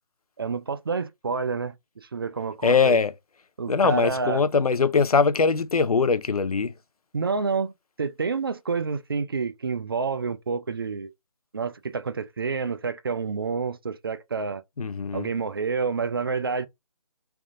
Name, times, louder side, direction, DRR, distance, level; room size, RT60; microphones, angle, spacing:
voice 1, 0.4-1.7 2.1-3.0 3.6-4.4 7.1-7.7 8.0-11.1 11.5-14.6 15.1-16.7, right 5 dB, 40° right, 0.4 m, -28 dB
voice 2, 2.6-3.1 3.7-6.7 14.8-15.3, left 5 dB, 85° left, 0.5 m, -21 dB
3.4 x 2.5 x 3.6 m
figure-of-eight pair, 160°, 18 cm